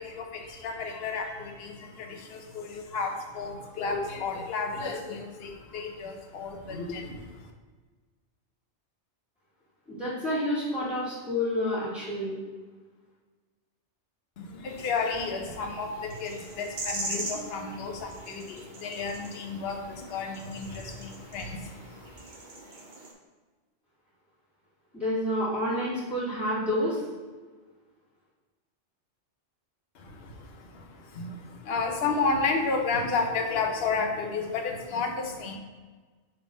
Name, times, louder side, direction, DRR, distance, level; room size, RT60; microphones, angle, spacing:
voice 1, 0.0-7.5 14.4-22.1 29.9-35.6, left 4 dB, 60° left, 2 dB, 1.0 m, -32 dB
voice 2, 9.9-12.3 24.9-27.0, left 1 dB, 5° left, -11 dB, 1.7 m, -29 dB
sound 1, 14.7-23.1, right 2 dB, 45° right, 1.0 m, -41 dB
5.8 x 3.4 x 5.1 m, 1.4 s
omnidirectional pair, 1.2 m